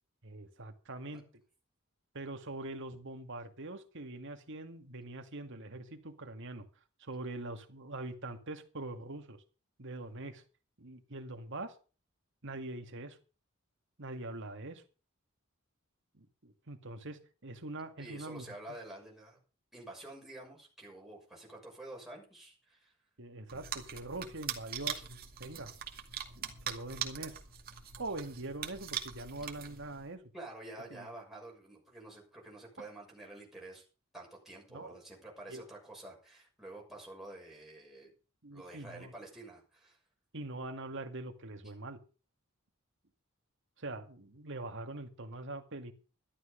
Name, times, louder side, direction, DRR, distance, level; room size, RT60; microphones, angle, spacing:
voice 1, 0.2-1.2 2.1-6.7 7.0-9.4 9.8-10.4 10.8-11.7 12.4-13.2 14.0-14.8 16.1-18.6 23.2-25.7 26.4-27.4 28.0-30.2 30.9-31.1 32.8-32.9 34.7-34.9 35.5-35.6 38.4-39.1 40.3-42.0 43.8-45.9, right 2 dB, 65° right, 6 dB, 2.0 m, -43 dB
voice 2, 18.0-19.4 19.7-22.9 30.3-33.9 34.1-38.1 38.5-40.0, right 2 dB, ahead, -3 dB, 6.3 m, -49 dB
sound 1, 23.5-30.1, right 8 dB, 45° right, 2.3 m, -42 dB
13.0 x 12.0 x 5.2 m, 0.36 s
head